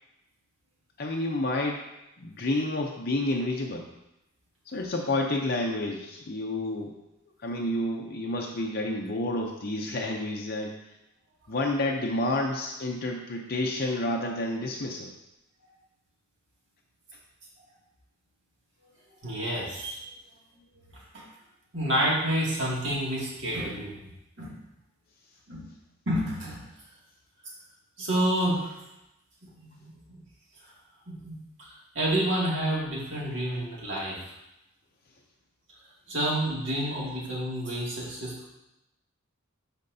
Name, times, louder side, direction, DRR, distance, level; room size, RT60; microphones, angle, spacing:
voice 1, 1.0-1.8 2.2-3.9 4.7-7.0 7.4-10.8 11.5-15.1, left 2 dB, 45° left, 1 dB, 0.6 m, -29 dB
voice 2, 19.2-20.0 21.1-21.2 21.7-24.1 24.4-24.6 25.5-25.6 26.1-26.6 28.0-28.8 29.5-29.9 31.1-31.3 31.6-34.2 36.1-38.5, right 1 dB, 60° right, -5 dB, 2.2 m, -29 dB
12.0 x 4.4 x 2.7 m, 0.90 s
head